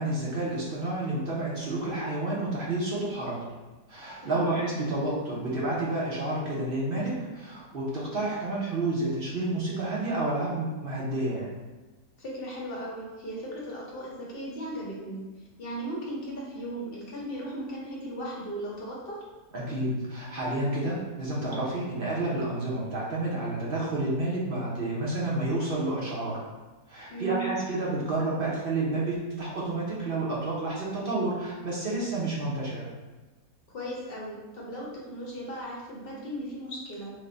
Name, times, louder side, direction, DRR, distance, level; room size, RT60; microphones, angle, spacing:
voice 1, 0.0-3.4 3.9-11.5 19.5-26.4 26.9-32.9, right 2 dB, 50° right, -5 dB, 0.7 m, -30 dB
voice 2, 4.2-4.6 12.2-15.2 15.6-19.2 27.1-27.5 33.7-37.1, right 1 dB, 50° left, -4 dB, 0.8 m, -37 dB
3.3 x 2.2 x 3.8 m, 1.2 s
omnidirectional pair, 1.7 m